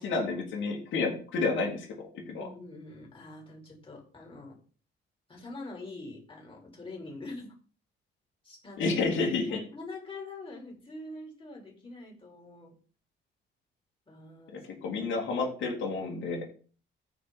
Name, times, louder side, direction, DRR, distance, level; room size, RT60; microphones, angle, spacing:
voice 1, 0.0-1.9 2.3-2.5 8.8-9.6 14.5-16.4, left 4 dB, 75° left, 0 dB, 2.9 m, -30 dB
voice 2, 2.4-4.6 5.3-7.5 8.4-9.0 9.5-12.7 14.1-15.0 15.6-15.7, left 2 dB, 25° left, -1 dB, 4.6 m, -44 dB
13.5 x 5.0 x 4.3 m, 0.40 s
cardioid pair, 90°, 20 cm